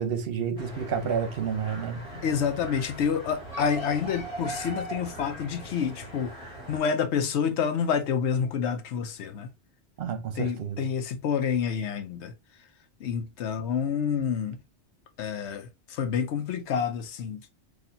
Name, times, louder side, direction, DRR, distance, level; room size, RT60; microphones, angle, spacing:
voice 1, 0.0-2.0 10.0-10.8, right 7 dB, 65° right, 0.9 m, -30 dB
sound 1, 0.6-6.8, right 1 dB, 30° left, 1.5 m, -40 dB
voice 2, 2.1-6.3 6.7-9.5 10.3-12.3 13.0-14.6 15.2-17.4, left 7 dB, 85° left, 0.9 m, -28 dB
4.1 x 2.6 x 2.6 m
omnidirectional pair, 1.1 m